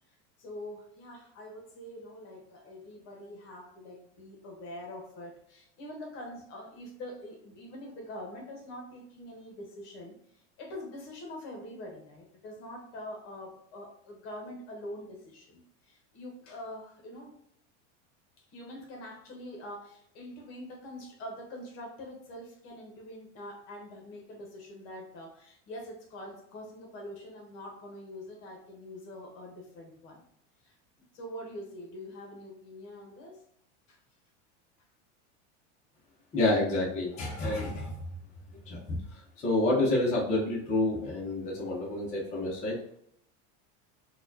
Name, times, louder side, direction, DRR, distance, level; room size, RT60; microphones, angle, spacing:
voice 1, 0.4-17.4 18.4-30.2 30.6-30.8 31.1-33.4 33.9-34.0, left 1 dB, 45° left, 1 dB, 1.1 m, -44 dB
voice 2, 36.3-38.0 38.7-42.8, left 2 dB, 20° left, -5 dB, 0.8 m, -29 dB
4.2 x 2.3 x 2.7 m, 0.68 s
supercardioid pair, 155°, 35 cm